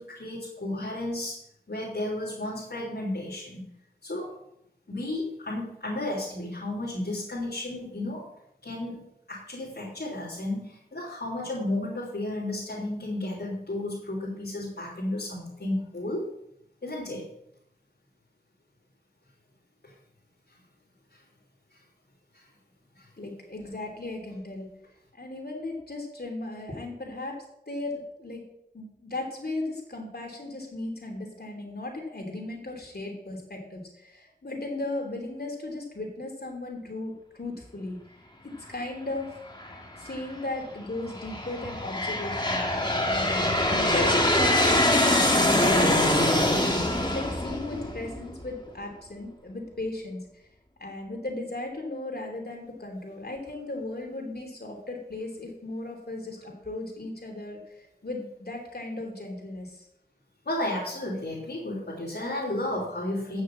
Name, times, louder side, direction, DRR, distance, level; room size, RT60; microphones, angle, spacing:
voice 1, 0.0-1.4 1.7-3.6 4.0-4.3 4.9-8.3 8.6-9.0 9.3-16.3 16.8-17.2 19.8-19.9 22.3-22.4 22.9-23.1 60.4-63.4, left 1 dB, 85° left, -8 dB, 3.1 m, -33 dB
voice 2, 23.2-24.7 25.1-28.4 28.7-38.0 38.7-39.4 40.0-42.6 43.0-50.4 50.8-59.9, left 2 dB, 70° left, 0 dB, 3.2 m, -36 dB
Aircraft, 39.6-40.2 40.9-48.4, left 1 dB, 25° left, 2.1 m, -24 dB
9.3 x 6.4 x 7.4 m, 0.78 s
wide cardioid pair, 40°, 17 cm